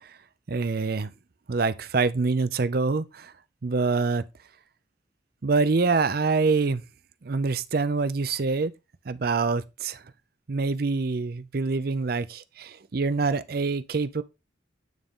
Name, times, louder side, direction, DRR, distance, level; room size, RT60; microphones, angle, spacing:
voice 1, 0.5-1.1 1.5-3.3 3.6-4.2 5.4-6.8 7.2-8.7 9.1-10.0 10.5-14.2, right 4 dB, 50° right, 0.5 m, -25 dB
9.1 x 3.7 x 3.7 m
head